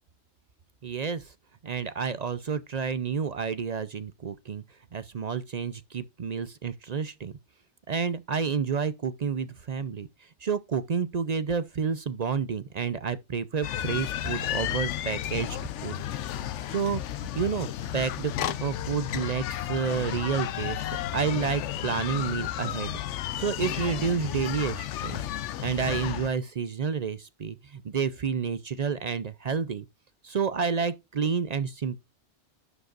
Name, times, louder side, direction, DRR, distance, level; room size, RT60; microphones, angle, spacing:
voice 1, 0.8-1.3 1.6-4.6 4.9-7.3 7.9-16.0 16.7-17.7 17.9-20.8 21.1-22.9 23.4-25.3 25.6-29.9 30.2-32.0, right 6 dB, 50° right, 0.5 m, -30 dB
sound 1, 13.6-26.3, left 11 dB, 90° left, 0.9 m, -33 dB
11.0 x 5.1 x 2.4 m
omnidirectional pair, 1.2 m